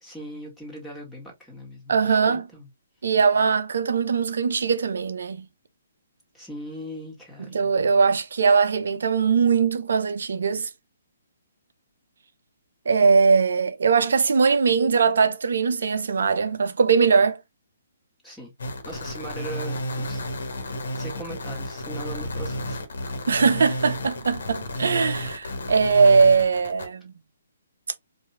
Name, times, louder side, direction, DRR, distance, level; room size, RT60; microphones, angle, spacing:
voice 1, 0.0-2.7 6.3-7.7 18.2-18.5 18.8-20.3 21.0-22.8, right 1 dB, ahead, 1.7 m, -39 dB
voice 2, 1.9-2.5 3.0-5.4 7.5-10.7 12.9-17.4 23.3-27.1, right 5 dB, 55° right, 0.7 m, -20 dB
sound 1, 18.6-26.9, left 1 dB, 55° left, 1.3 m, -32 dB
4.6 x 2.7 x 3.3 m
figure-of-eight pair, 130°, 0 cm